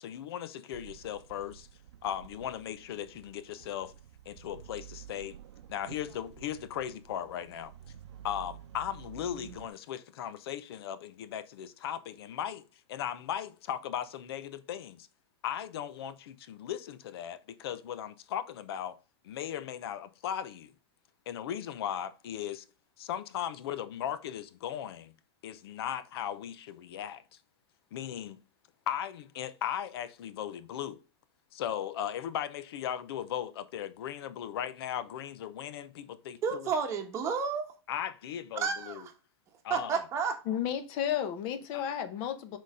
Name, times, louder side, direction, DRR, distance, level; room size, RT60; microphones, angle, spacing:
voice 1, 0.0-1.7 2.0-4.0 4.3-5.4 5.7-7.7 8.2-12.6 12.9-15.1 15.4-19.0 19.2-20.7 21.3-22.6 23.0-25.1 25.4-27.2 27.9-28.4 28.9-31.0 31.5-36.7 37.9-39.0 39.6-40.0 41.7-41.9, left 10 dB, 60° left, 0.8 m, -37 dB
sound 1, 0.7-9.7, right 10 dB, 80° right, 0.7 m, -51 dB
voice 2, 36.4-37.7 38.5-39.1 39.7-40.4, right 6 dB, 20° right, 1.1 m, -31 dB
voice 3, 40.5-42.6, left 10 dB, 35° left, 0.9 m, -32 dB
6.3 x 4.1 x 4.8 m
supercardioid pair, 170°, 14 cm